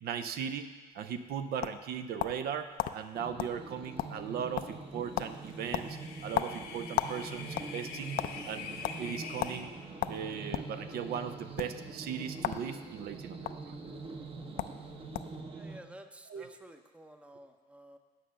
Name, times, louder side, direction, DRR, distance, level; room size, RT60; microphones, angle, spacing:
voice 1, 0.0-9.7 10.1-13.8 16.3-16.5, right 7 dB, 65° right, 10 dB, 0.6 m, -38 dB
sound 1, 1.0-2.5 2.8-2.9 3.4-3.6 3.8-4.3 4.6-4.9 5.2-5.3 5.7-7.2 7.5-8.3 8.8-9.0 9.4-9.6 10.0-10.7 11.5-11.7 12.4-12.6 12.9-13.5 14.3-14.4 14.6-14.8 15.1-15.4, left 12 dB, 60° left, 0.4 m, -34 dB
sound 2, 3.1-15.8, right 3 dB, 35° right, 0.9 m, -44 dB
sound 3, 5.3-9.6, left 6 dB, 80° left, 1.1 m, -45 dB
voice 2, 15.5-18.0, right 1 dB, 5° right, 7 dB, 0.6 m, -52 dB
9.1 x 5.6 x 6.4 m, 1.3 s
cardioid pair, 110°, 17 cm